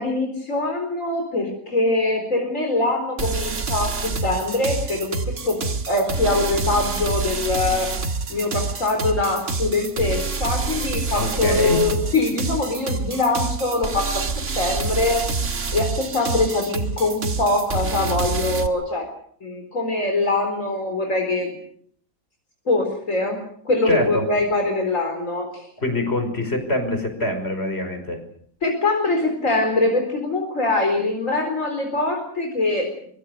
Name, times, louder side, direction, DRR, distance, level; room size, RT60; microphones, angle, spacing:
voice 1, 0.0-5.6 5.9-7.9 8.3-14.2 14.6-15.3 15.7-19.1 19.4-21.5 22.7-25.7 28.6-32.9, left 2 dB, 65° left, 3 dB, 4.6 m, -23 dB
sound 1, 3.2-18.7, right 4 dB, 55° right, 2.1 m, -27 dB
voice 2, 11.2-11.8 23.9-24.2 25.8-28.2, left 1 dB, 45° left, 7 dB, 5.7 m, -24 dB
24.0 x 24.0 x 6.7 m, 0.64 s
omnidirectional pair, 1.5 m